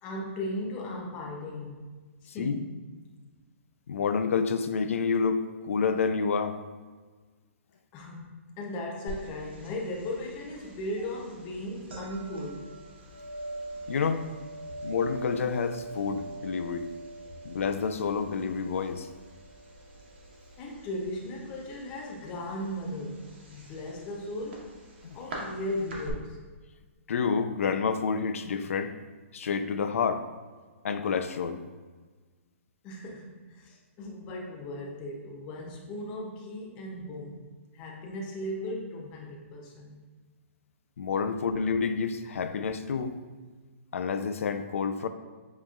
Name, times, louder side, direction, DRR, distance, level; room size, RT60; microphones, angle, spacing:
voice 1, 0.0-1.9 2.2-2.7 7.9-12.8 20.6-24.7 25.1-26.4 32.8-37.4 37.7-40.0, left 1 dB, 15° left, -1 dB, 0.5 m, -37 dB
voice 2, 2.3-2.6 3.9-5.4 5.7-6.6 13.9-14.3 14.8-16.9 17.4-19.1 25.0-25.2 27.1-28.9 29.3-30.3 30.8-31.6 41.0-43.2 43.9-45.1, left 5 dB, 75° left, 9 dB, 0.4 m, -28 dB
sound 1, 9.1-26.1, right 2 dB, 50° right, 1.1 m, -44 dB
7.4 x 3.0 x 2.3 m, 1.4 s
hypercardioid pair, 175°, 7 cm